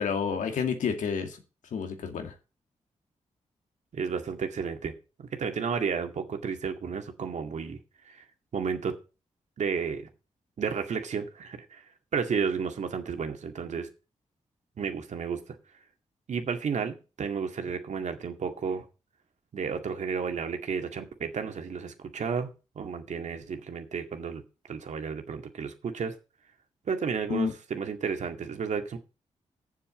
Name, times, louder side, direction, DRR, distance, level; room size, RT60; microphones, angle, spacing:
voice 1, 0.0-1.4 1.7-2.3 27.3-27.5, left 6 dB, 85° left, 6 dB, 2.2 m, -29 dB
voice 2, 3.9-4.9 5.2-7.8 8.1-8.2 8.5-9.0 9.6-10.1 10.6-11.8 12.1-13.9 14.8-15.4 16.3-18.8 19.5-22.5 22.8-24.4 24.7-26.1 26.9-29.0, right 6 dB, 70° right, 6 dB, 2.1 m, -32 dB
7.5 x 7.4 x 7.7 m, 0.32 s
cardioid pair, 65°, 13 cm